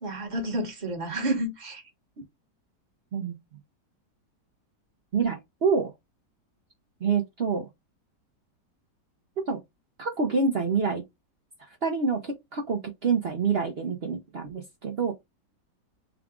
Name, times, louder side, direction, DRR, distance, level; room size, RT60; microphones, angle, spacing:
voice 1, 0.0-1.8, right 1 dB, 30° right, 1.1 m, -30 dB
voice 2, 5.1-5.9 7.0-7.7 9.5-9.6 10.0-11.0 11.6-15.1, right 5 dB, 55° right, 0.6 m, -27 dB
4.8 x 2.4 x 3.6 m
omnidirectional pair, 1.9 m